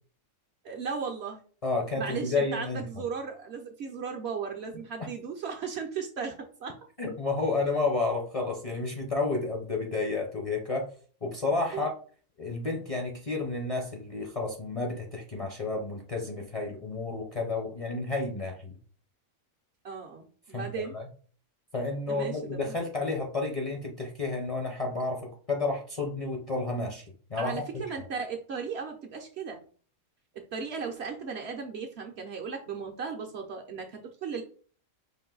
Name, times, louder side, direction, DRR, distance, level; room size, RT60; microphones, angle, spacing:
voice 1, 0.6-1.4 2.0-6.8 11.7-11.9 19.8-20.9 22.1-22.7 27.4-29.6 30.3-34.4, right 5 dB, 60° right, 2 dB, 0.8 m, -36 dB
voice 2, 1.6-2.8 7.0-10.9 11.2-11.9 12.4-18.7 20.5-20.7 20.9-21.1 21.7-27.0 27.3-28.0, left 3 dB, 35° left, 0 dB, 0.6 m, -31 dB
5.3 x 2.5 x 3.8 m, 0.42 s
omnidirectional pair, 1.5 m